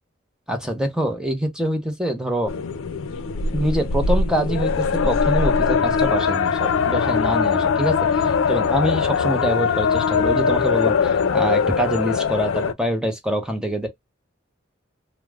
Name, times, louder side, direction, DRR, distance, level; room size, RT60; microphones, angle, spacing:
voice 1, 0.5-2.5 3.5-8.0 8.5-13.9, equal, 5° right, 0.5 m, -24 dB
sound 1, 2.5-12.7, left 5 dB, 75° left, 0.4 m, -21 dB
2.2 x 2.0 x 3.2 m
head